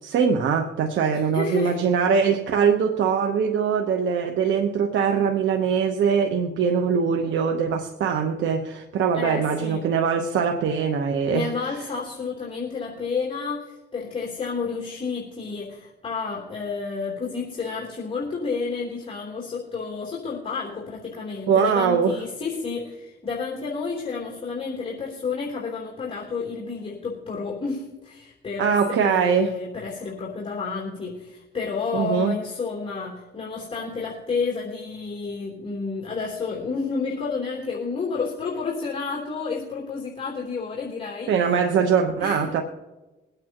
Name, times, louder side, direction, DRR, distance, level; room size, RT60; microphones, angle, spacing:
voice 1, 0.0-11.7 21.5-22.2 28.6-29.5 31.9-32.3 41.3-42.6, right 6 dB, 75° right, 4 dB, 1.1 m, -22 dB
voice 2, 1.1-1.8 9.1-9.9 11.3-41.3 42.2-42.6, left 4 dB, 30° left, -4 dB, 3.3 m, -30 dB
22.5 x 9.0 x 3.0 m, 1.1 s
cardioid pair, 90°, 20 cm